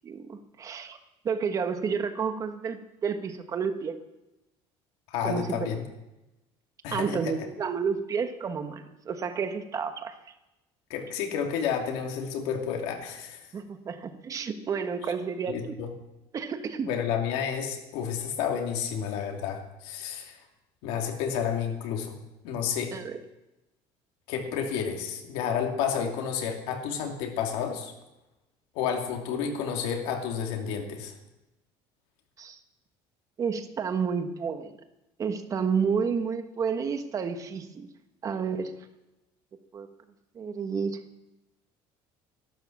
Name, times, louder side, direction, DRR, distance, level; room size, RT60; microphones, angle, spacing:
voice 1, 0.0-1.0 1.2-4.0 5.2-5.7 6.9-10.1 13.5-15.7 16.3-16.9 22.9-23.2 32.4-32.6 33.4-34.7 35.2-37.9 38.2-38.7 39.7-39.9 40.3-41.0, right 6 dB, 35° right, 8 dB, 1.4 m, -30 dB
voice 2, 5.1-5.8 6.8-7.3 10.9-13.5 15.5-15.9 16.8-20.4 20.8-22.9 24.3-27.9 28.7-31.1, left 7 dB, 85° left, 2 dB, 2.6 m, -31 dB
12.0 x 12.0 x 7.2 m, 0.97 s
cardioid pair, 140°, 10 cm